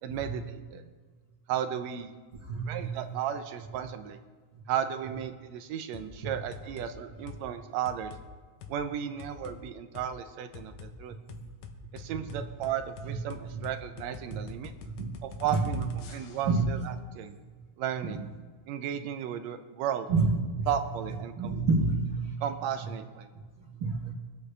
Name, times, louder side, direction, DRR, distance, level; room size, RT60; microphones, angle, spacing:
voice 1, 0.0-0.9 1.5-2.1 2.6-4.2 4.7-8.1 8.7-11.1 11.9-14.7 15.2-17.4 17.8-18.3 18.7-20.1 20.7-21.5 22.4-23.3, right 9 dB, 75° right, 8 dB, 1.8 m, -34 dB
voice 2, 2.5-3.1 11.8-12.4 13.0-13.1 13.5-13.6 15.0-15.1 15.5-15.8 16.5-16.6 20.1-20.3 20.6-20.7 21.4-22.4 23.8-24.1, right 4 dB, 45° right, -5 dB, 1.9 m, -29 dB
sound 1, 5.9-6.1 6.5-6.9 7.3-7.5 7.9-8.3 8.6-8.8 9.2-9.6 10.0-10.1 10.5-10.9 11.3-16.6, left 7 dB, 70° left, 2.1 m, -45 dB
22.5 x 8.1 x 3.3 m, 1.4 s
omnidirectional pair, 3.5 m